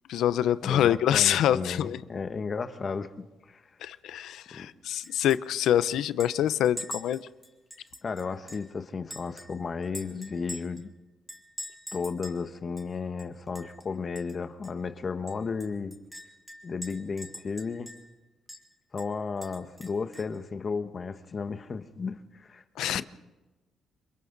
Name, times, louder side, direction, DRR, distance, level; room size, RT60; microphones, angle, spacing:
voice 1, 0.1-2.0 3.8-7.2 22.8-23.0, left 11 dB, 80° left, 0.7 m, -25 dB
voice 2, 0.6-3.6 4.5-4.7 8.0-10.9 11.9-16.0 16.6-17.9 18.9-22.6 22.9-23.0, left 5 dB, 40° left, 1.3 m, -34 dB
Chink clink, 5.0-5.4 5.6-5.7 6.2-8.7 9.1-10.8 11.3-12.4 12.8-12.9 13.2-13.9 14.2-14.3 14.6-14.7 15.3-18.2 18.5-18.6 19.0-20.4, equal, ahead, 3.7 m, -44 dB
29.0 x 23.0 x 4.1 m
cardioid pair, 90°, 0 cm